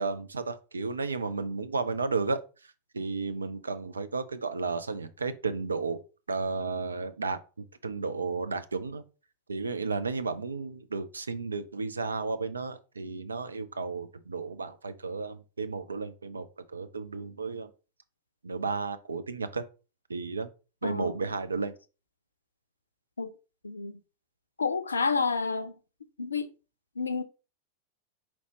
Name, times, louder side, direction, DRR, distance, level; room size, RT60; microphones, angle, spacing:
voice 1, 0.0-6.0 6.3-9.0 9.5-17.7 18.4-19.6 20.1-20.5 20.8-21.7, right 4 dB, 75° right, 0.5 m, -33 dB
voice 2, 20.8-21.2 23.2-23.3 23.6-24.0 24.6-25.8 26.2-26.5 27.0-27.2, left 4 dB, 75° left, 0.4 m, -29 dB
4.4 x 4.2 x 2.9 m
figure-of-eight pair, 90°, 0 cm